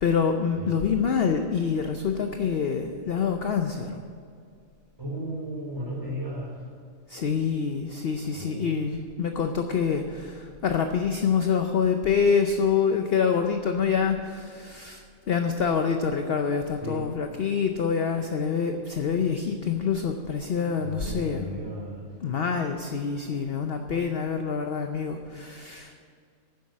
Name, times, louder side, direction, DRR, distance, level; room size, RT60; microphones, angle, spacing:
voice 1, 0.0-4.0 7.1-21.5 22.2-25.9, left 6 dB, 50° left, 5 dB, 0.8 m, -26 dB
voice 2, 5.0-6.6 8.3-8.8 16.8-17.1 20.8-22.1, right 1 dB, 15° right, -4 dB, 4.2 m, -35 dB
10.5 x 7.6 x 9.4 m, 2.2 s
omnidirectional pair, 1.5 m